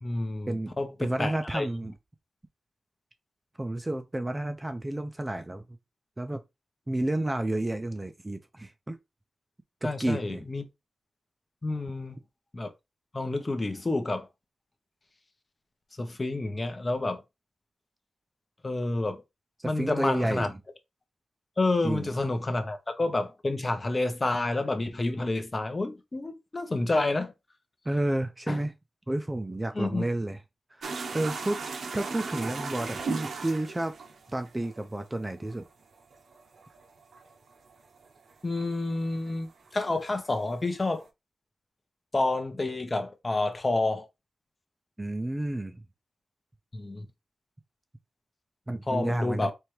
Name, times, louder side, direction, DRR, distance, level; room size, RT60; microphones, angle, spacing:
voice 1, 0.0-1.7 9.8-10.6 11.6-12.2 12.5-12.7 13.1-14.3 16.0-17.2 18.6-19.2 19.6-20.5 21.6-27.3 28.5-28.6 29.7-30.1 38.4-41.0 42.1-44.1 46.7-47.1 48.9-49.5, left 2 dB, 30° left, 0.8 m, -29 dB
voice 2, 1.0-1.9 3.6-5.8 6.2-6.4 6.9-9.0 9.8-10.4 19.6-20.5 21.8-22.1 27.9-28.7 29.1-30.4 30.7-31.6 31.9-33.9 34.3-35.6 45.0-45.8 48.7-49.5, right 1 dB, 20° right, 0.5 m, -31 dB
sound 1, 30.8-39.3 39.6-41.0, right 4 dB, 80° right, 0.8 m, -38 dB
4.5 x 3.3 x 3.2 m
wide cardioid pair, 110°, 0 cm